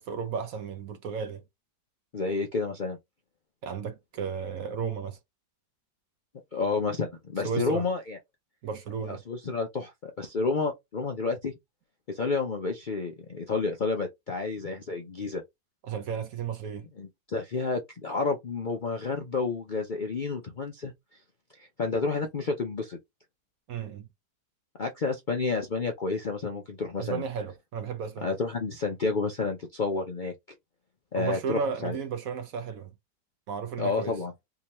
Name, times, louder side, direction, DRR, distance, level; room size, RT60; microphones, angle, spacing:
voice 1, 0.0-1.4 3.6-5.2 7.4-7.9 8.6-9.2 15.9-16.9 23.7-24.1 27.0-28.3 31.2-32.9 33.5-34.2, right 6 dB, 65° right, 1.0 m, -34 dB
voice 2, 2.1-3.0 6.5-8.2 9.1-11.5 12.1-15.4 17.0-20.9 21.5-23.0 24.8-27.2 28.2-30.3 31.1-32.0 33.8-34.3, left 4 dB, 70° left, 0.4 m, -30 dB
3.5 x 2.8 x 2.9 m
omnidirectional pair, 1.8 m